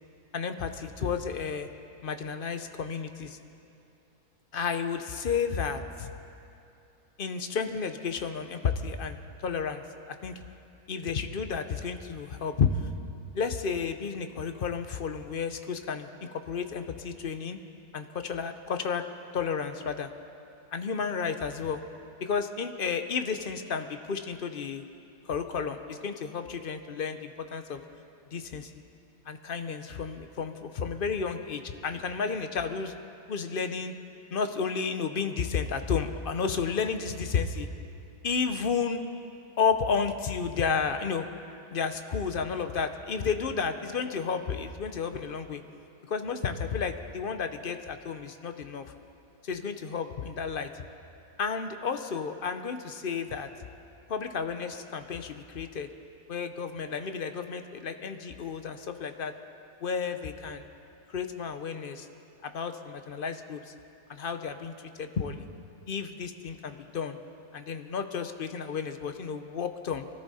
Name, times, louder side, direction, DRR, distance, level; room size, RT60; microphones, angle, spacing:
voice 1, 0.3-1.7 2.0-3.4 4.5-6.1 7.2-9.8 10.2-10.4 10.9-12.9 13.3-16.1 16.5-17.6 17.9-19.0 19.3-20.1 20.7-21.8 22.2-24.8 25.2-27.8 28.3-28.7 29.3-32.9 33.3-33.9 34.3-37.7 38.2-39.0 39.6-41.3 41.7-45.6 46.1-48.9 49.4-50.8 51.4-53.5 54.1-55.9 56.3-59.3 59.8-60.7 61.1-62.1 62.4-63.7 64.1-65.4 65.9-67.2 67.5-70.0, left 6 dB, 50° left, 8 dB, 0.6 m, -32 dB
23.5 x 14.0 x 4.1 m, 2.7 s
omnidirectional pair, 1.7 m